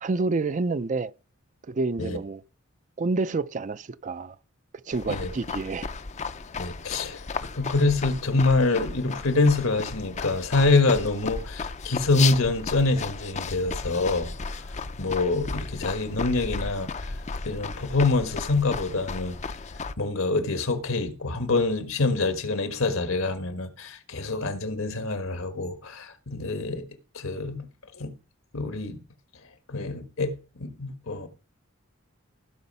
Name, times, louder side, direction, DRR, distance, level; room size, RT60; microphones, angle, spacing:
voice 1, 0.0-1.1 1.7-2.4 3.0-4.4 4.9-5.9, right 3 dB, 40° right, 0.5 m, -28 dB
sound 1, 4.9-19.9, left 4 dB, 35° left, 0.5 m, -34 dB
voice 2, 6.6-7.2 7.5-14.3 14.7-17.0 17.4-19.4 20.0-26.8 27.1-27.7 27.9-28.1 28.5-29.0 29.7-30.3 30.6-31.3, left 3 dB, 85° left, 1.6 m, -25 dB
15.5 x 5.5 x 5.5 m
head